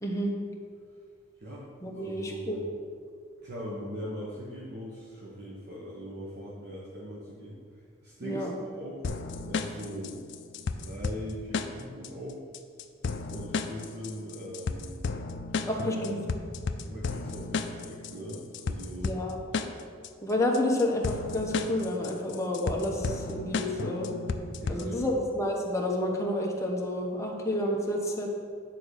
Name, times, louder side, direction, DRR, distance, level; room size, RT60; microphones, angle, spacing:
voice 1, 0.0-0.3 1.8-2.6 8.2-8.5 15.6-16.2 19.0-19.4 20.2-24.1 24.7-28.3, left 1 dB, 15° left, -1 dB, 1.0 m, -30 dB
voice 2, 1.9-2.7 3.4-8.5 8.7-9.0 9.4-10.2 10.8-12.4 13.3-15.0 16.0-16.1 16.8-19.1 24.6-25.2, equal, 55° right, -6 dB, 1.2 m, -41 dB
sound 1, 9.0-25.0, left 4 dB, 65° left, 0.5 m, -34 dB
9.2 x 3.8 x 6.5 m, 2.1 s
head